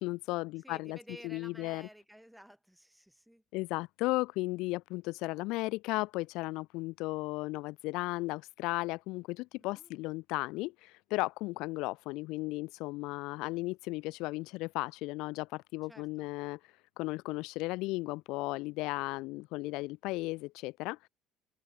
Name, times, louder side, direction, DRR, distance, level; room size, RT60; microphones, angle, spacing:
voice 1, 0.0-1.0 1.2-1.9 3.5-9.2 9.6-10.7 11.1-15.4 15.7-16.6 17.0-21.0, left 22 dB, 70° left, 0.7 m, -35 dB
voice 2, 0.6-3.4 9.6-10.0 15.9-16.3, equal, ahead, 1.8 m, -53 dB
cardioid pair, 170°, 0 cm